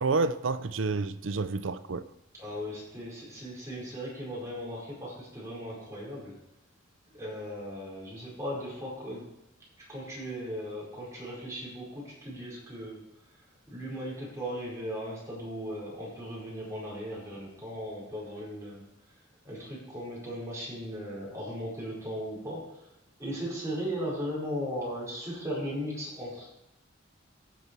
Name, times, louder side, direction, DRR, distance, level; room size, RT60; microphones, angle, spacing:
voice 1, 0.0-2.0, right 4 dB, 75° right, 0.6 m, -29 dB
voice 2, 2.4-6.4 7.1-9.2 9.9-13.0 13.7-18.8 19.4-22.9 23.2-26.5, equal, 15° right, 4.7 m, -37 dB
15.5 x 6.7 x 4.7 m
head